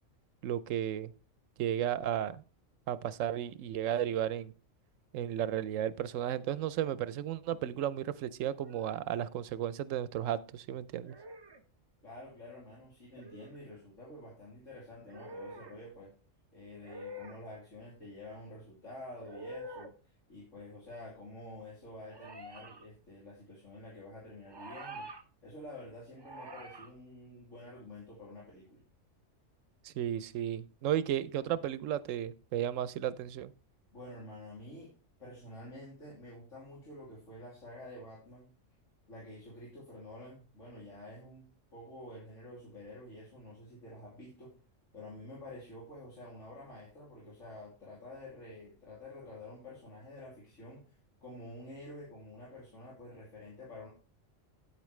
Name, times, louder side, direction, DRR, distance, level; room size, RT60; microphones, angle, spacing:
voice 1, 0.4-1.1 1.6-2.4 2.9-4.5 5.1-11.1 29.8-33.5, right 11 dB, 90° right, 16 dB, 1.0 m, -34 dB
sound 1, 8.4-9.0 11.0-11.6 13.1-13.7 15.1-15.8 16.8-17.4 19.2-19.9 22.1-22.9 24.5-25.2 26.2-26.9, right 1 dB, 25° right, 0.6 m, -47 dB
voice 2, 12.0-16.1 16.5-25.1 25.4-28.8 33.9-34.9 35.2-38.5 39.1-44.5 44.9-50.8 51.2-53.9, left 1 dB, 80° left, -5 dB, 3.1 m, -49 dB
9.1 x 8.4 x 3.1 m, 0.35 s
omnidirectional pair, 1.3 m